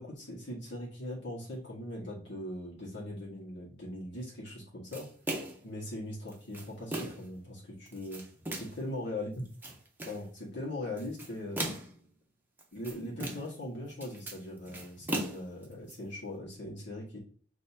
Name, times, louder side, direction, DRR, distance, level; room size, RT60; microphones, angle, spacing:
voice 1, 0.0-5.1 5.6-8.2 8.5-9.5 10.0-11.6 12.7-17.2, left 1 dB, 65° left, -5 dB, 1.5 m, -40 dB
sound 1, 4.9-5.7 6.3-7.3 7.9-8.8 9.4-10.2 11.0-12.0 12.6-13.6 13.9-15.9, right 1 dB, 10° right, 0.8 m, -38 dB
6.5 x 2.7 x 2.8 m, 0.44 s
head